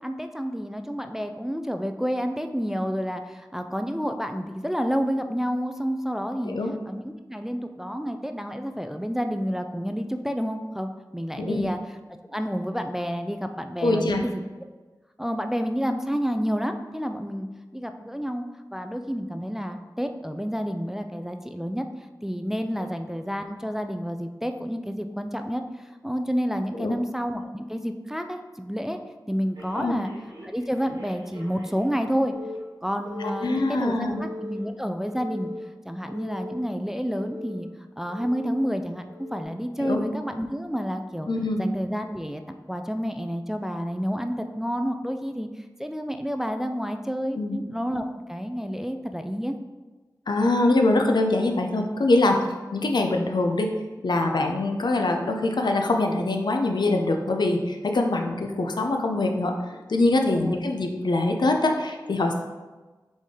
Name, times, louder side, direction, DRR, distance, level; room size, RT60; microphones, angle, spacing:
voice 1, 0.0-6.5 6.9-11.8 12.3-14.4 15.2-17.5 17.7-18.4 18.7-21.9 22.2-29.0 29.3-30.1 30.4-32.3 32.8-35.5 35.8-37.7 38.0-41.3 41.6-49.6 60.3-60.6, equal, 5° right, 6 dB, 0.3 m, -29 dB
voice 2, 11.4-11.7 13.8-14.3 26.8-26.9 29.7-30.0 33.2-34.2 39.8-40.0 41.3-41.6 47.3-47.6 50.3-52.4 52.7-53.7 54.0-62.3, left 2 dB, 75° left, 3 dB, 0.5 m, -23 dB
Telephone, 29.5-32.0 32.3-32.6 33.0-33.6 34.1-34.6 35.1-35.6 36.1-36.6 37.1-37.6 38.1-38.6 39.1-39.4, left 2 dB, 75° right, 1.3 m, -40 dB
4.1 x 3.2 x 3.6 m, 1.2 s
wide cardioid pair, 55°, 8 cm